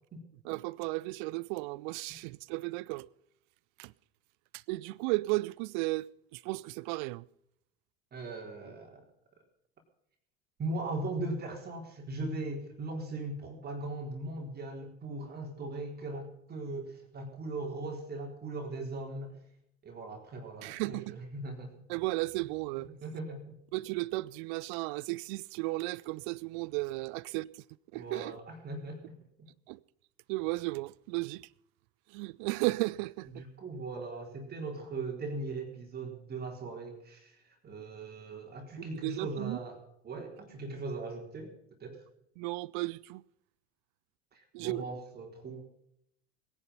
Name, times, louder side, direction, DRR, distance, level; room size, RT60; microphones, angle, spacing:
voice 1, 0.4-3.1 3.8-3.9 4.5-6.1 6.3-7.3 20.6-21.2 21.9-22.9 23.7-27.6 27.9-28.4 29.7-29.8 30.3-31.5 32.1-33.4 39.0-39.6 42.4-43.2 44.5-44.8, right 22 dB, 50° right, 0.6 m, -34 dB
voice 2, 8.1-9.0 10.6-19.4 19.8-21.7 22.8-23.6 27.9-29.5 33.3-42.0 44.3-45.6, right 2 dB, 30° right, 4.1 m, -39 dB
21.5 x 10.5 x 5.5 m
figure-of-eight pair, 70°, 32 cm